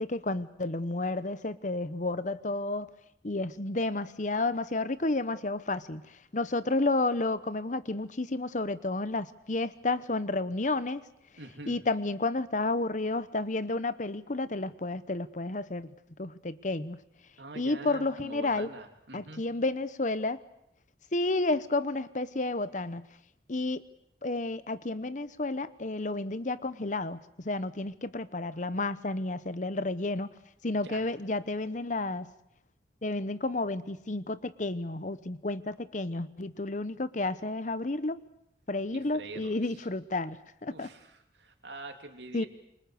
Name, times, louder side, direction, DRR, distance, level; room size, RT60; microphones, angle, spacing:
voice 1, 0.0-2.9 3.2-6.0 6.3-11.0 11.7-15.9 16.2-17.0 17.6-18.7 19.1-20.4 21.1-23.0 23.5-23.8 24.2-27.2 27.4-30.3 30.6-32.3 33.0-38.2 38.7-40.9 42.3-42.4, left 2 dB, 45° left, 14 dB, 1.0 m, -31 dB
voice 2, 11.4-11.8 17.4-19.5 30.8-31.0 38.9-39.6 40.7-42.5, right 2 dB, 80° right, 5 dB, 3.0 m, -45 dB
27.5 x 25.0 x 6.5 m, 0.74 s
head